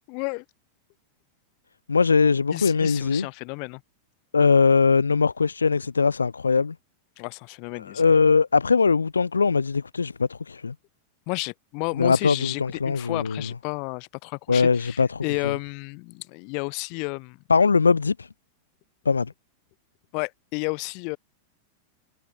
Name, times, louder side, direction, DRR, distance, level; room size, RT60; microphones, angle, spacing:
voice 1, 0.1-0.4 2.5-3.8 7.2-8.0 11.3-17.4 20.1-21.2, left 37 dB, 45° left, 7.0 m, -32 dB
voice 2, 1.9-3.3 4.3-6.7 7.8-10.7 12.0-13.4 14.5-15.2 17.5-18.3 19.1-19.3, left 5 dB, 75° left, 0.7 m, -21 dB
figure-of-eight pair, 90°, 0 cm